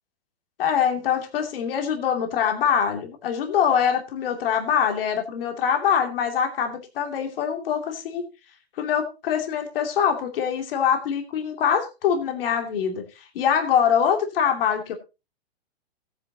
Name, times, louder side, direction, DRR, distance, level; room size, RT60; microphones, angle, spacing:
voice 1, 0.6-8.2 8.8-14.9, left 8 dB, 60° left, 4 dB, 2.8 m, -24 dB
16.5 x 9.7 x 2.9 m, 0.27 s
hypercardioid pair, 140°, 32 cm